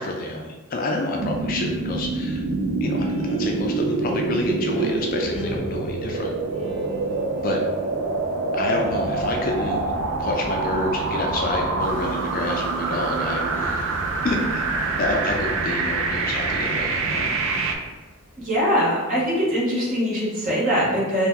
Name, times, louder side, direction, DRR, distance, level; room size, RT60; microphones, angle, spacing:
voice 1, 0.0-2.5 2.8-3.0 3.2-6.3 7.4-7.6 8.5-9.8 10.2-14.0 14.2-14.7 15.0-17.3, left 2 dB, 40° left, 1 dB, 0.3 m, -28 dB
sound 1, 1.2-17.7, right 3 dB, 65° right, 0.3 m, -26 dB
Guitar, 2.8-10.0, left 1 dB, 20° left, 0.9 m, -41 dB
sound 2, 11.8-18.7, left 1 dB, 10° right, 0.9 m, -43 dB
voice 2, 18.4-21.3, equal, 35° right, -6 dB, 1.0 m, -22 dB
2.8 x 2.2 x 3.6 m, 1.3 s
head